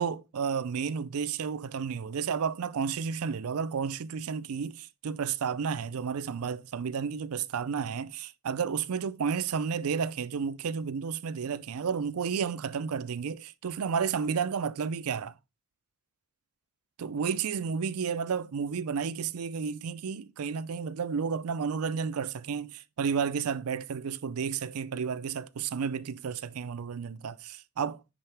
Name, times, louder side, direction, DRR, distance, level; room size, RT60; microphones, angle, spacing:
voice 1, 0.0-15.4 17.0-28.1, right 6 dB, 75° right, 0.4 m, -32 dB
10.0 x 3.9 x 3.3 m
head